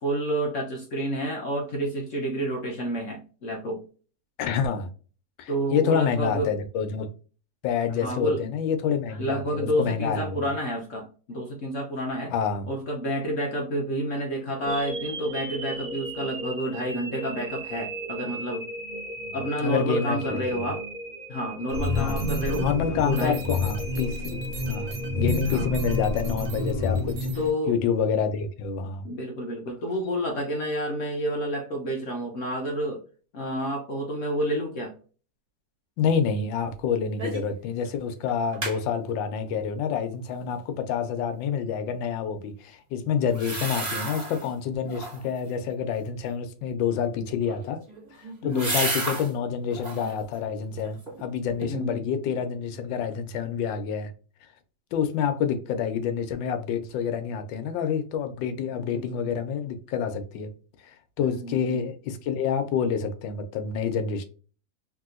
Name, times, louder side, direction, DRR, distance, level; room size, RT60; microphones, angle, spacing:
voice 1, 0.0-3.8 5.5-6.5 8.0-8.4 9.1-12.3 12.7-18.7 19.3-20.8 21.3-22.7 23.0-23.4 25.5-25.7 27.4-27.7 29.0-33.0 33.3-34.9 48.4-48.8 51.7-52.1 58.7-59.2 61.2-61.8, equal, 65° left, 0.8 m, -29 dB
voice 2, 4.4-4.9 5.4-7.1 7.6-10.4 12.3-12.7 19.6-20.7 22.0-24.4 24.7-27.3 27.7-29.0 36.0-47.8 48.4-54.1 54.9-60.5 60.8-64.2, left 7 dB, 85° left, 1.3 m, -28 dB
sound 1, 14.6-26.7, right 2 dB, 65° right, 0.5 m, -37 dB
sound 2, 21.7-27.5, left 2 dB, 85° right, 1.5 m, -29 dB
sound 3, 37.2-37.5 37.9-38.0 38.3-38.8 43.3-44.5 44.9-45.4 47.4-49.3 49.7-50.1 50.6-51.3 51.6-51.7, right 2 dB, 25° right, 1.1 m, -32 dB
3.3 x 2.7 x 2.4 m
omnidirectional pair, 2.0 m